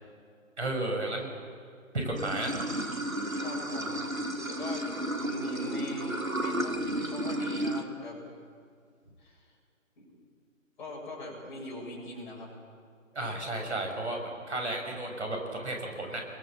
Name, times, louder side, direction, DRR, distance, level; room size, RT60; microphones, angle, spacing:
voice 1, 0.6-1.3 1.9-2.6 13.1-16.3, right 2 dB, 55° right, 2 dB, 6.3 m, -33 dB
Water / Sink (filling or washing), 2.2-7.8, right 1 dB, 85° right, 2.4 m, -32 dB
voice 2, 3.4-4.0 4.5-4.8 5.2-8.2 9.2-9.5 10.0-10.1 10.8-12.5, left 1 dB, 35° left, -2 dB, 7.7 m, -41 dB
27.5 x 22.0 x 7.6 m, 2.2 s
figure-of-eight pair, 145°, 40 cm